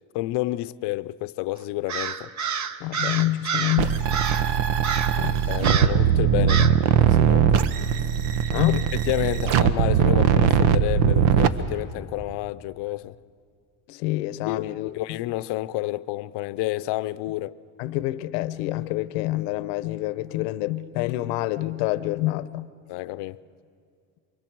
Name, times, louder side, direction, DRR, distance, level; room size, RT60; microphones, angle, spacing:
voice 1, 0.1-2.3 5.5-6.7 7.0-7.6 8.7-8.8 9.1-13.2 14.5-17.5 22.9-23.4, left 17 dB, 60° left, 0.7 m, -30 dB
Crow, 1.9-3.8 4.1-4.5 4.8-5.2 5.6-6.0 6.5-6.8, right 6 dB, 35° right, 0.9 m, -28 dB
voice 2, 2.8-4.1 5.2-5.4 6.4-6.8 8.5-8.9 13.9-15.2 17.8-22.7, left 17 dB, 85° left, 0.8 m, -27 dB
sound 1, 3.8-11.5, right 9 dB, 70° right, 1.0 m, -20 dB
28.5 x 24.5 x 4.6 m
supercardioid pair, 100°, 48 cm